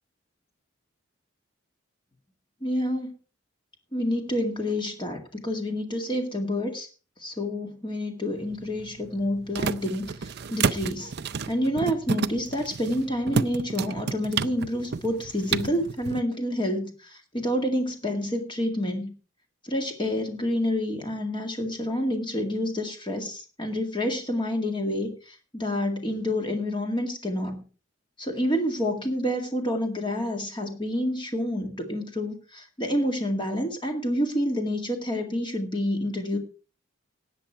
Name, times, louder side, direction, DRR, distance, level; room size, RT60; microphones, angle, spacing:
voice 1, 2.6-3.1 3.9-6.9 7.2-11.1 11.5-19.1 19.6-27.6 28.2-36.4, left 1 dB, 25° left, 4 dB, 2.0 m, -28 dB
sound 1, 8.4-16.2, right 5 dB, 55° right, 0.6 m, -31 dB
18.0 x 7.5 x 4.5 m, 0.35 s
head